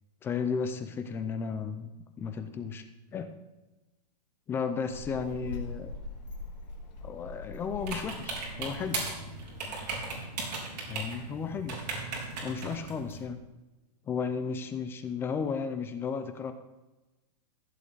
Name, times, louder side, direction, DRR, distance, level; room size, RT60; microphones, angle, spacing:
voice 1, 0.2-2.8 3.1-3.3 4.5-5.9 7.0-9.0 10.9-11.8 12.4-13.4 14.1-16.5, left 6 dB, 10° left, 9 dB, 0.4 m, -34 dB
Child speech kid speaking, 4.9-10.2, left 3 dB, 80° left, 3.1 m, -43 dB
sound 1, 7.8-13.2, right 3 dB, 75° right, 3.9 m, -37 dB
14.5 x 7.6 x 3.9 m, 1.1 s
hypercardioid pair, 160°, 21 cm